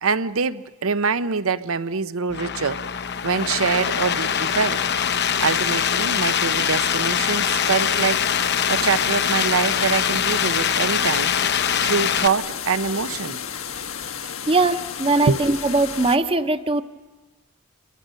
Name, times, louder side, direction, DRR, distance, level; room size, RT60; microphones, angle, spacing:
voice 1, 0.0-2.8 3.2-4.8 5.4-8.3 8.7-11.3 11.8-13.4 13.8-13.9 15.2-15.4, right 5 dB, 85° right, 0.7 m, -24 dB
sound 1, 2.3-12.3, left 8 dB, 55° left, 0.8 m, -23 dB
sound 2, 2.6-16.2, left 7 dB, 85° left, 1.4 m, -34 dB
voice 2, 14.5-16.8, right 2 dB, 25° right, 0.9 m, -20 dB
29.0 x 23.0 x 6.5 m
head